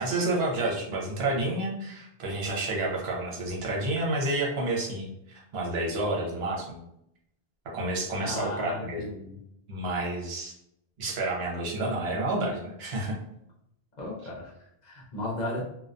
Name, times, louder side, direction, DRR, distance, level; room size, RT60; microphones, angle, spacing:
voice 1, 0.0-5.1 5.5-6.8 7.7-9.0 9.7-10.5 11.0-13.2, right 2 dB, 70° right, -3 dB, 0.9 m, -29 dB
voice 2, 8.2-9.4 14.0-15.6, left 1 dB, 50° left, -4 dB, 0.7 m, -35 dB
2.2 x 2.2 x 2.5 m, 0.78 s
omnidirectional pair, 1.1 m